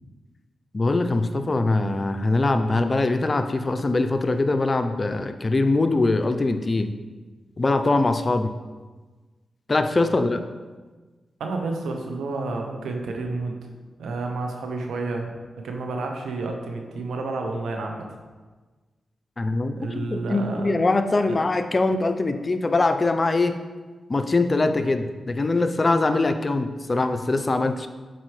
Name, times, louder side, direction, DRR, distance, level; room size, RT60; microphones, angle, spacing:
voice 1, 0.7-6.9 7.6-8.5 9.7-10.4 19.4-23.6 24.1-27.9, left 2 dB, 40° left, 8 dB, 0.5 m, -22 dB
voice 2, 11.4-13.6 14.0-15.3 15.6-18.0 19.8-20.7 21.2-21.4, right 3 dB, 85° right, 3 dB, 0.8 m, -30 dB
7.8 x 4.5 x 3.2 m, 1.3 s
supercardioid pair, 45°, 0 cm